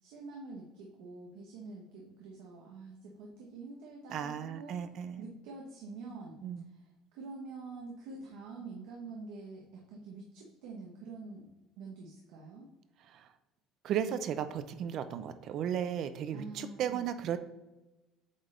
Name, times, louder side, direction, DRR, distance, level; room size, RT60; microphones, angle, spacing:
voice 1, 0.0-4.8 5.2-11.5 11.8-12.7 16.3-17.1, right 3 dB, 80° right, -1 dB, 1.0 m, -46 dB
voice 2, 4.1-5.3 6.4-6.6 13.1-13.3 13.8-17.4, right 9 dB, 45° right, 11 dB, 0.5 m, -35 dB
8.0 x 3.3 x 3.7 m, 1.0 s
cardioid pair, 150°, 0 cm